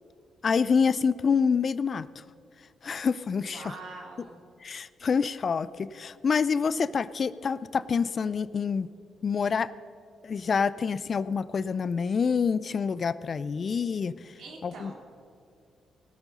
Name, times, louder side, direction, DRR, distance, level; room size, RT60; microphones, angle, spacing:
voice 1, 0.4-2.1 2.8-3.6 4.6-8.9 9.2-9.7 10.2-14.1 14.6-14.9, left 6 dB, 50° left, 18 dB, 0.4 m, -27 dB
voice 2, 3.5-4.4 14.4-14.9, right 3 dB, 70° right, 0 dB, 2.9 m, -43 dB
18.5 x 8.2 x 5.4 m, 2.4 s
supercardioid pair, 55°, 0 cm